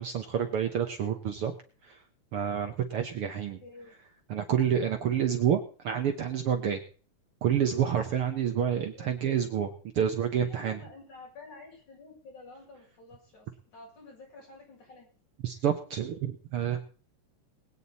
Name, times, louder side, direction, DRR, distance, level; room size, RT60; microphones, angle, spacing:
voice 1, 0.0-1.5 1.8-2.0 2.3-3.6 4.3-6.8 7.4-10.8 15.4-16.8, right 8 dB, 60° right, 5 dB, 1.7 m, -28 dB
voice 2, 3.6-4.0 8.9-9.1 10.4-15.1, left 3 dB, 80° left, -3 dB, 8.6 m, -50 dB
21.0 x 9.1 x 4.1 m, 0.39 s
omnidirectional pair, 3.4 m